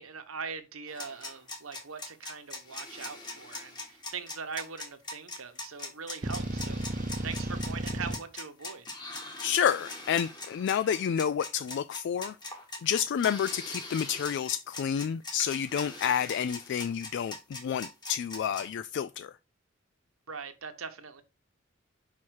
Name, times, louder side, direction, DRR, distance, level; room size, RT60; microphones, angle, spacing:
voice 1, 0.0-6.8 7.2-8.9 20.3-21.2, right 5 dB, 85° right, 1.1 m, -41 dB
sound 1, 0.9-18.7, left 2 dB, 20° left, 1.7 m, -41 dB
sound 2, 6.2-8.2, right 1 dB, 40° right, 0.7 m, -33 dB
voice 2, 9.3-19.3, left 8 dB, 60° left, 0.3 m, -30 dB
5.6 x 4.6 x 6.3 m
head